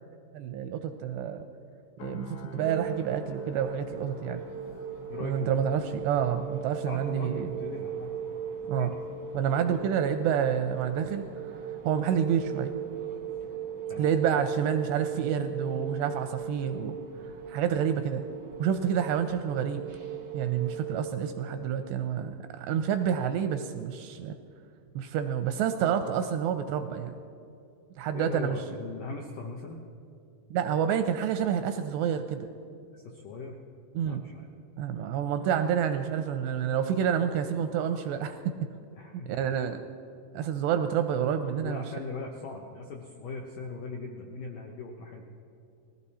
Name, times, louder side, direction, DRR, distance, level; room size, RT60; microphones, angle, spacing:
voice 1, 0.3-1.5 2.0-4.4 5.2-7.5 8.7-8.9 9.3-11.6 11.9-12.7 14.0-17.0 17.5-18.2 18.6-19.9 20.3-24.4 25.0-27.1 28.0-28.6 30.5-32.5 34.0-34.3 34.8-38.7 39.1-39.8 40.3-41.8, right 8 dB, 85° right, 8 dB, 2.5 m, -28 dB
sound 1, 2.0-16.0 16.3-16.6, equal, 65° left, 2.7 m, -50 dB
sound 2, 2.6-20.9, right 7 dB, 65° right, 1.1 m, -38 dB
voice 2, 5.1-5.5 5.9-6.0 6.9-8.1 8.8-9.0 13.9-14.1 28.1-29.8 33.0-33.6 34.0-34.5 39.0-39.5 41.6-45.3, left 3 dB, 80° left, 1 dB, 1.9 m, -39 dB
19.5 x 15.0 x 4.2 m, 2.5 s
omnidirectional pair, 5.2 m